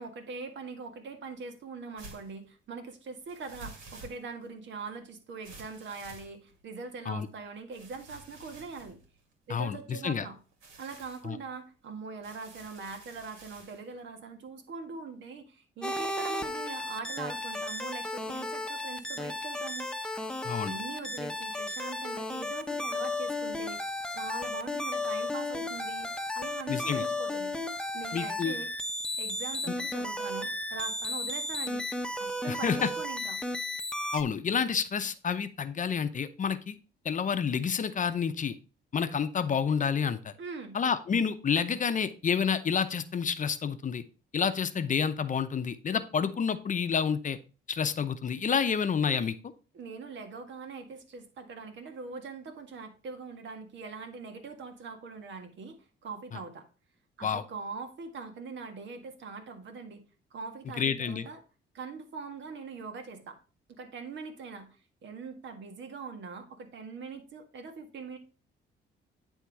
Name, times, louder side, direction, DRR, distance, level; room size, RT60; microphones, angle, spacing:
voice 1, 0.0-9.0 9.5-10.4 10.8-19.9 20.6-26.1 26.3-27.5 27.9-28.7 29.2-31.8 32.2-33.4 40.4-40.8 49.7-56.6 57.2-60.0 60.3-61.4 61.7-63.4 63.8-64.8 65.0-68.2, right 4 dB, 65° right, 6 dB, 1.7 m, -42 dB
sound 1, 2.0-2.3 3.3-4.5 5.4-6.7 7.7-9.8 10.5-11.3 12.2-13.8, right 3 dB, 85° right, 2.3 m, -50 dB
voice 2, 9.5-10.3 11.2-11.4 20.4-20.7 26.7-27.0 28.1-28.5 29.7-29.8 32.5-32.9 34.1-36.8 37.0-38.6 38.9-40.3 40.7-44.0 44.3-47.4 47.7-49.3 56.3-56.4 57.2-57.4 60.8-61.3, left 6 dB, 40° left, 11 dB, 0.7 m, -29 dB
sound 2, 15.8-34.2, left 2 dB, 5° left, 0.9 m, -34 dB
9.8 x 3.6 x 4.7 m, 0.35 s
cardioid pair, 90°, 20 cm